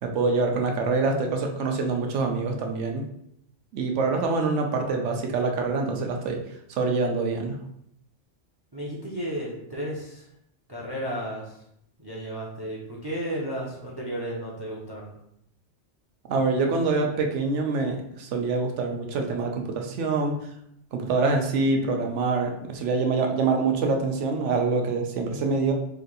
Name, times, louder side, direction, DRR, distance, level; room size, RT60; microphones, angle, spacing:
voice 1, 0.0-3.1 3.7-6.4 6.7-7.6 16.3-20.4 20.9-25.7, right 3 dB, 90° right, 3 dB, 1.0 m, -25 dB
voice 2, 8.7-10.3 10.7-11.6 12.0-15.2, right 1 dB, 25° right, -4 dB, 0.5 m, -33 dB
3.2 x 2.6 x 3.9 m, 0.75 s
omnidirectional pair, 1.2 m